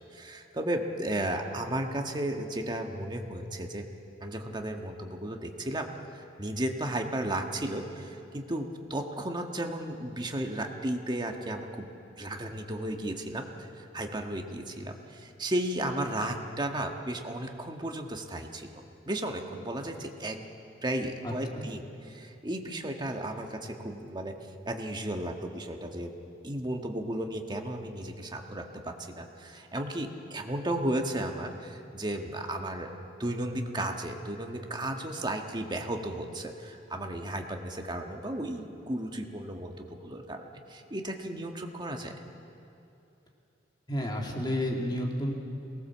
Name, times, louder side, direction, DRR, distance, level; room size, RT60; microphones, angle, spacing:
voice 1, 0.1-3.9 4.2-11.9 12.2-20.4 20.8-24.4 24.6-26.1 26.4-32.9 33.2-42.2, right 1 dB, 25° right, 3 dB, 1.5 m, -34 dB
voice 2, 21.2-21.6 43.9-45.3, left 1 dB, 25° left, 0 dB, 2.1 m, -31 dB
23.5 x 18.5 x 7.3 m, 2.7 s
head